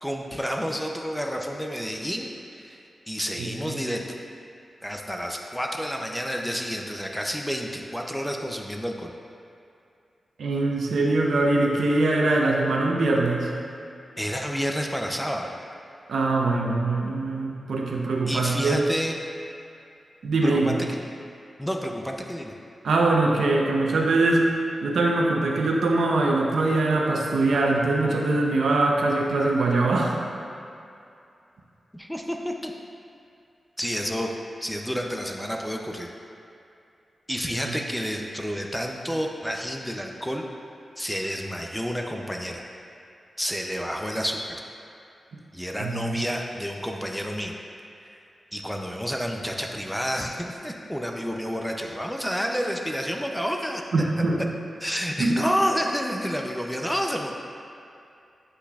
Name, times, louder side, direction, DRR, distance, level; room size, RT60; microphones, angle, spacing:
voice 1, 0.0-2.8 3.1-4.1 4.8-9.1 14.2-15.5 18.3-19.2 20.4-21.0 21.6-22.5 31.9-32.7 33.8-34.3 34.6-36.1 37.3-40.4 41.0-42.6 43.4-44.4 45.5-47.5 48.5-53.8 54.8-57.3, equal, 5° left, 1 dB, 0.4 m, -29 dB
voice 2, 3.4-3.8 10.4-13.5 16.1-18.8 20.2-20.8 22.8-24.5 24.8-30.2 37.7-37.8 45.8-46.2 53.9-54.5 55.2-55.4, right 2 dB, 90° right, -1 dB, 0.7 m, -22 dB
8.2 x 5.8 x 2.3 m, 2.6 s
wide cardioid pair, 120°, 0 cm